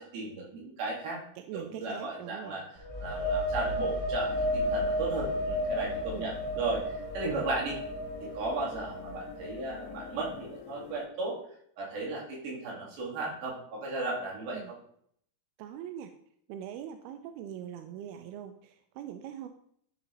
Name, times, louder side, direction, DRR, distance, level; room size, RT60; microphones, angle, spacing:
voice 1, 0.0-1.2 1.5-7.8 8.2-11.4 11.8-14.8, right 3 dB, 65° right, -3 dB, 4.0 m, -35 dB
voice 2, 1.4-2.6 6.1-6.3 14.5-14.7 15.6-16.1 16.5-19.5, right 10 dB, 80° right, 7 dB, 2.3 m, -42 dB
sound 1, 2.8-10.3, equal, 20° right, 2.2 m, -33 dB
sound 2, 4.3-11.1, left 10 dB, 85° left, 2.8 m, -47 dB
12.0 x 4.1 x 4.0 m, 0.65 s
omnidirectional pair, 4.7 m